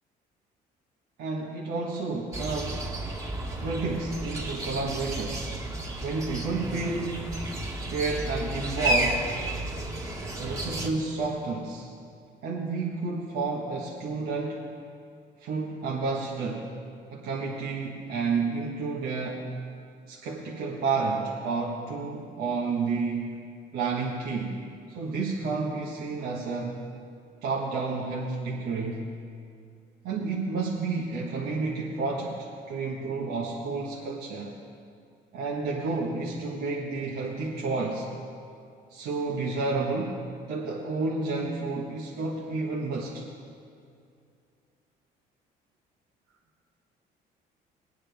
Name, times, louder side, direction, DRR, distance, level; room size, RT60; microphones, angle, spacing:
voice 1, 1.2-2.9 3.6-5.5 6.0-7.4 7.9-9.3 10.4-11.9 12.4-14.7 15.4-16.7 17.1-19.4 20.1-23.4 23.7-24.6 24.9-26.8 27.4-29.0 30.0-34.6 35.3-38.1 38.9-40.2 40.5-43.2, right 3 dB, 75° right, -3 dB, 1.4 m, -30 dB
sound 1, 2.3-10.9, right 1 dB, 20° right, 1.9 m, -32 dB
20.0 x 9.9 x 3.5 m, 2.4 s
cardioid pair, 110°, 17 cm